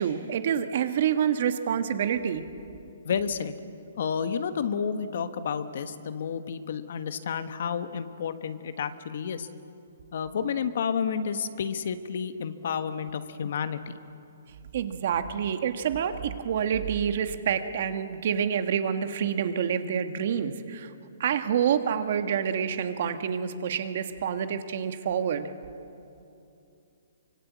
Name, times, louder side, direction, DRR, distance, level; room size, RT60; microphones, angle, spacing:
voice 1, 0.0-2.4 14.7-20.9 21.2-25.5, right 8 dB, 45° right, 9 dB, 1.4 m, -27 dB
voice 2, 3.0-3.5 4.0-9.5 10.1-13.9, left 7 dB, 55° left, 11 dB, 1.3 m, -30 dB
24.5 x 24.0 x 8.5 m, 2.7 s
hypercardioid pair, 170°, 0 cm